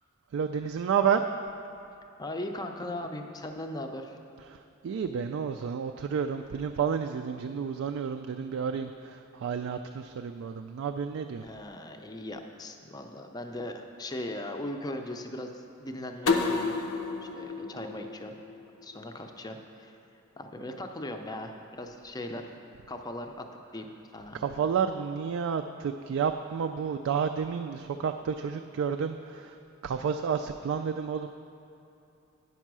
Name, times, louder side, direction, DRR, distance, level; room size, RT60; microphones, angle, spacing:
voice 1, 0.3-1.2 4.5-4.6 4.8-11.4 24.3-29.6 29.8-31.3, right 7 dB, 65° right, 6 dB, 0.3 m, -30 dB
voice 2, 2.2-4.2 11.4-16.8 17.2-18.4 18.8-20.0 20.4-22.5 22.9-23.5 23.7-24.4, left 1 dB, 20° left, 4 dB, 0.5 m, -38 dB
sound 1, 16.3-19.1, left 4 dB, 80° left, 0.7 m, -31 dB
9.2 x 5.4 x 6.1 m, 2.8 s
head